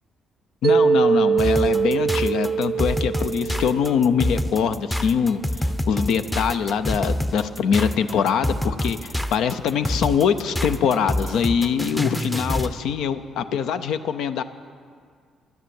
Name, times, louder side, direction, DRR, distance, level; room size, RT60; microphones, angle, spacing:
voice 1, 0.6-5.4 5.9-14.4, left 7 dB, 80° left, 11 dB, 0.6 m, -23 dB
Mallet percussion, 0.6-4.8, right 6 dB, 45° right, 0.5 m, -22 dB
sound 1, 1.4-12.8, left 1 dB, 10° left, 0.7 m, -26 dB
12.0 x 9.9 x 7.7 m, 2.1 s
cardioid pair, 90°, 0 cm